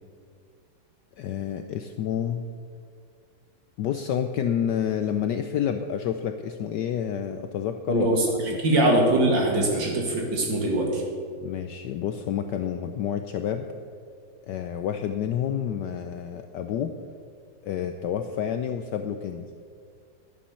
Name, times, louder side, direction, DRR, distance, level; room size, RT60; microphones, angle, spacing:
voice 1, 1.2-2.5 3.8-8.2 8.5-8.6 9.6-9.7 11.4-13.7 14.5-16.9 17.6-19.5, left 9 dB, 75° left, 7 dB, 1.0 m, -29 dB
voice 2, 7.9-8.3 8.6-11.0, right 1 dB, 60° right, 0 dB, 2.6 m, -22 dB
11.5 x 8.4 x 7.0 m, 2.2 s
omnidirectional pair, 2.3 m